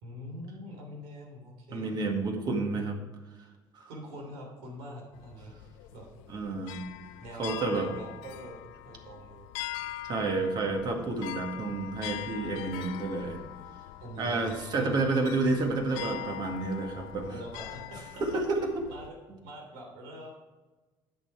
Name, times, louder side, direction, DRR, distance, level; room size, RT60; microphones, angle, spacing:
voice 1, 0.0-2.1 3.9-5.5 5.9-6.1 7.2-9.5 14.0-15.1 17.3-18.0 18.9-19.2 19.4-20.3, equal, 90° right, 1 dB, 3.3 m, -44 dB
voice 2, 1.7-3.0 3.8-3.9 6.3-6.8 7.4-7.9 10.0-13.4 14.2-17.3 18.2-18.7, right 3 dB, 50° right, 2 dB, 2.0 m, -30 dB
sound 1, 5.1-19.1, left 14 dB, 90° left, 0.4 m, -43 dB
10.5 x 6.9 x 4.8 m, 1.2 s
cardioid pair, 100°, 9 cm